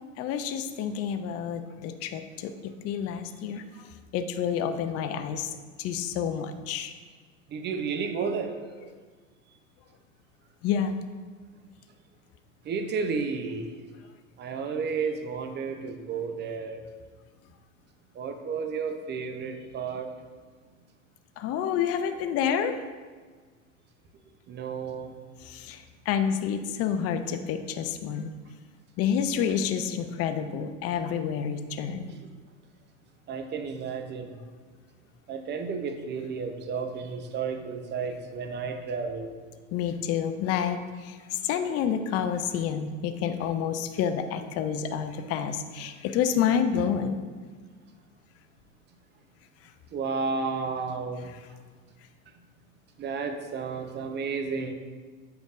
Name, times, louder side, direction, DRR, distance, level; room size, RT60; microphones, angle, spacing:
voice 1, 0.2-2.5 2.8-3.6 4.1-5.5 5.8-6.9 10.6-11.0 21.4-22.8 25.5-28.3 29.0-32.1 39.7-41.2 41.4-47.2, left 8 dB, 35° left, 8 dB, 0.5 m, -29 dB
voice 2, 7.5-8.5 12.7-13.7 14.4-16.8 18.2-20.1 24.5-25.1 33.3-34.3 35.3-39.3 49.9-51.3 53.0-54.7, right 5 dB, 25° right, 6 dB, 0.6 m, -32 dB
7.8 x 5.1 x 2.5 m, 1.5 s
hypercardioid pair, 75°, 40 cm